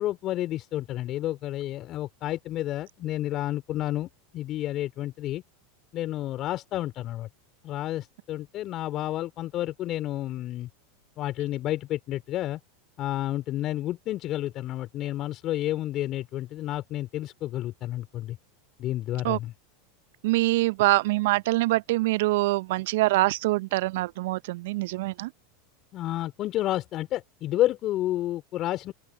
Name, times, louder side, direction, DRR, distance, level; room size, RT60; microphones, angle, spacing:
voice 1, 0.0-5.4 5.9-7.3 7.6-10.7 11.2-12.6 13.0-18.4 18.8-19.5 25.9-28.9, left 14 dB, 45° left, 3.8 m, -30 dB
voice 2, 20.2-25.3, right 20 dB, 65° right, 0.7 m, -24 dB
open air
hypercardioid pair, 90°, 0 cm